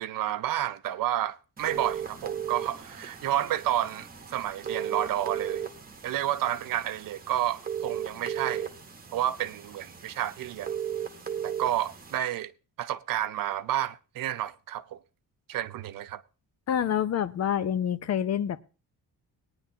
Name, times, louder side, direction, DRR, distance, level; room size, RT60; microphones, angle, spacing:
voice 1, 0.0-5.7 6.0-8.7 9.1-10.7 11.4-12.5 12.8-15.0 15.5-16.2, right 12 dB, 65° right, 0.6 m, -30 dB
sound 1, 1.6-12.2, right 8 dB, 25° right, 1.0 m, -36 dB
voice 2, 16.7-18.6, left 9 dB, 45° left, 0.6 m, -27 dB
19.5 x 9.7 x 2.8 m
cardioid pair, 160°, 36 cm